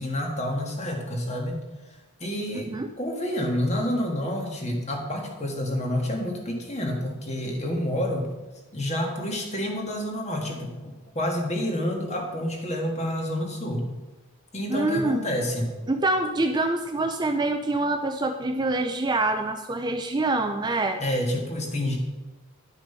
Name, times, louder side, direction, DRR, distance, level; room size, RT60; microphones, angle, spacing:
voice 1, 0.0-1.6 2.2-2.7 3.0-8.3 8.7-13.8 14.5-15.7 21.0-22.0, left 1 dB, 30° left, 1 dB, 1.7 m, -28 dB
voice 2, 2.5-2.9 14.7-15.3 15.9-21.0, right 2 dB, 20° right, 6 dB, 0.4 m, -25 dB
10.5 x 6.0 x 5.5 m, 1.1 s
head